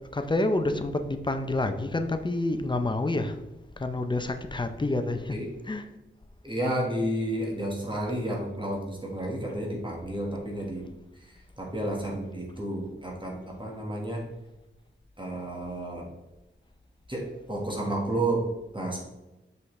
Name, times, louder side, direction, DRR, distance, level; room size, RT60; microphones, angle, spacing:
voice 1, 0.1-3.4 3.8-5.4 5.7-5.8, left 2 dB, 25° left, 7 dB, 0.5 m, -28 dB
voice 2, 6.4-10.9 11.3-14.2 15.2-16.1 17.1-18.4 18.7-19.0, right 1 dB, 25° right, -2 dB, 1.4 m, -31 dB
6.4 x 5.6 x 3.2 m, 1.0 s
wide cardioid pair, 115°, 20 cm